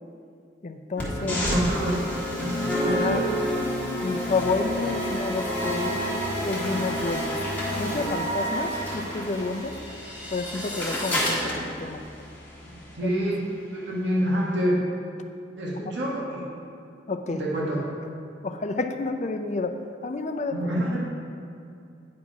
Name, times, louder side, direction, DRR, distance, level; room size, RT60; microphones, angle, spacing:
voice 1, 0.6-1.5 2.9-3.3 4.0-5.9 6.4-7.4 7.8-9.8 10.3-12.0 13.0-13.1 17.1-17.4 18.4-19.8 20.0-20.6, left 3 dB, 40° left, 6 dB, 0.4 m, -30 dB
sound 1, 1.0-13.0, equal, 10° left, 1.6 m, -29 dB
voice 2, 1.2-1.9 2.4-3.3 13.0-13.5 13.7-14.9 15.6-16.5 17.4-17.8 20.5-21.0, equal, 85° right, -5 dB, 1.6 m, -27 dB
sound 2, 9.4-11.3, left 1 dB, 10° right, 1.3 m, -38 dB
9.6 x 5.6 x 4.9 m, 2.5 s
head